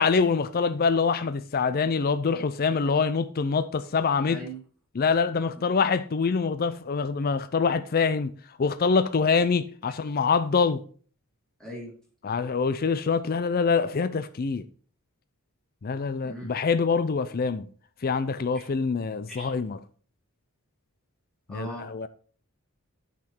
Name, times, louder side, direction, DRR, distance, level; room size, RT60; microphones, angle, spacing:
voice 1, 0.0-4.4 5.0-8.3 8.6-10.8 12.2-14.6 15.8-17.7 18.0-19.8 21.5-22.1, left 5 dB, 45° left, 0.5 m, -25 dB
voice 2, 4.3-4.6 11.6-11.9 16.2-16.6 18.5-18.6 19.3-19.5 21.5-21.8, right 1 dB, 5° left, 3.3 m, -39 dB
9.0 x 6.0 x 4.4 m
head